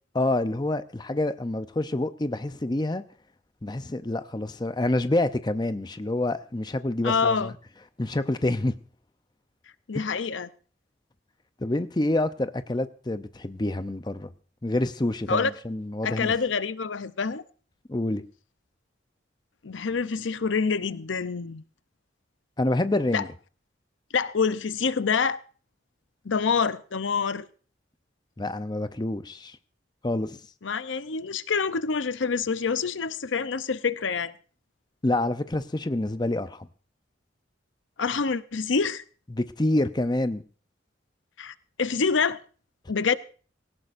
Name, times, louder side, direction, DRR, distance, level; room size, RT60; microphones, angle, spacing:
voice 1, 0.1-3.0 3.6-7.5 8.0-8.8 9.9-10.1 11.6-14.3 14.6-16.3 17.9-18.2 22.6-23.3 28.4-29.6 30.0-30.4 35.0-36.7 39.3-40.4, left 1 dB, 20° left, 0.6 m, -27 dB
voice 2, 7.0-7.5 9.9-10.5 15.3-15.5 16.0-17.4 19.6-21.6 23.1-23.2 24.1-25.4 26.2-27.5 30.6-34.3 38.0-39.0 41.4-42.4 42.9-43.2, left 5 dB, 85° left, 0.7 m, -26 dB
19.5 x 17.5 x 2.6 m
head